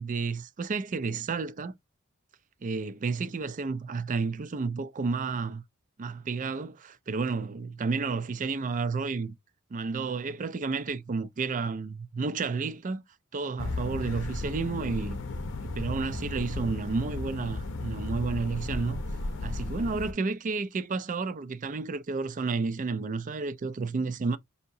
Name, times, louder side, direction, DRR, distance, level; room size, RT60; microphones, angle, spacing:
voice 1, 0.0-1.7 2.6-5.6 6.0-9.3 9.7-13.0 13.3-15.2 15.6-19.0 19.4-24.4, right 4 dB, 40° right, 0.4 m, -31 dB
sound 1, 13.6-20.1, left 2 dB, 60° left, 0.7 m, -34 dB
5.5 x 2.8 x 2.6 m
head